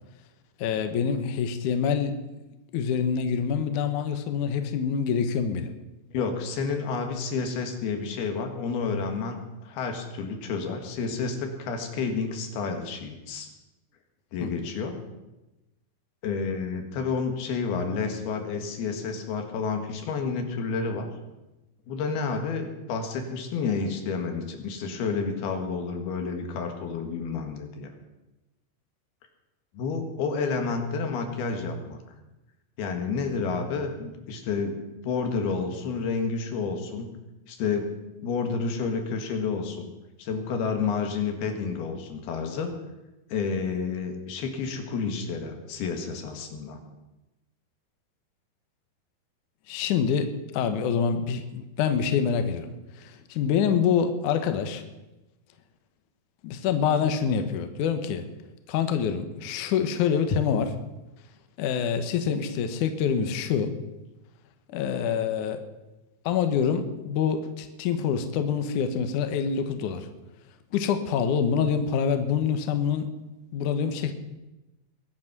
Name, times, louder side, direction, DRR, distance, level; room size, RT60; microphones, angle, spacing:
voice 1, 0.6-2.1 2.7-5.7 14.4-14.5 49.7-50.3 50.5-54.8 56.4-58.2 58.7-60.7 61.6-63.7 64.7-65.6 66.3-70.1 70.7-73.1 73.5-74.1, left 7 dB, 65° left, 7 dB, 2.3 m, -26 dB
voice 2, 6.1-13.5 14.3-15.0 16.2-21.1 21.9-27.9 29.7-32.0 32.8-34.8 35.0-37.1 37.5-37.9 38.2-39.9 40.2-42.7 43.3-46.8, left 5 dB, 90° left, 4 dB, 3.7 m, -30 dB
22.0 x 8.4 x 6.0 m, 1.0 s
omnidirectional pair, 4.3 m